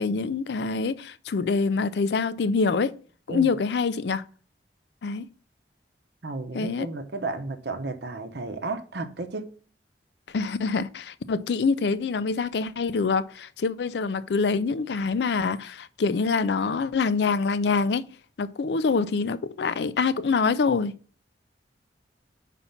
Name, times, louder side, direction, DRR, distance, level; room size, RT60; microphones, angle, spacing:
voice 1, 0.0-3.0 3.3-4.2 5.0-5.3 6.5-6.9 10.3-18.1 18.4-20.9, left 4 dB, 75° left, 0.4 m, -25 dB
voice 2, 6.2-9.5, right 3 dB, 75° right, 0.8 m, -33 dB
5.4 x 4.2 x 5.7 m
head